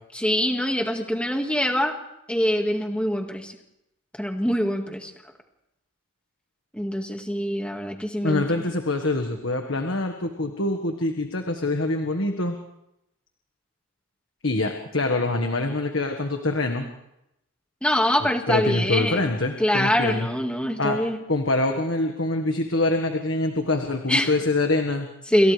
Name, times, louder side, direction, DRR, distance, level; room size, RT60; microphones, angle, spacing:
voice 1, 0.1-1.9 2.3-3.6 4.2-5.1 6.7-8.7 17.8-19.3 19.6-21.2 24.1-24.3 25.3-25.5, equal, 5° left, 3 dB, 1.9 m, -24 dB
voice 2, 8.2-12.6 14.4-16.9 18.5-20.3 20.8-21.0 21.3-25.1, left 2 dB, 60° left, 4 dB, 1.6 m, -25 dB
28.5 x 27.5 x 3.4 m, 0.83 s
head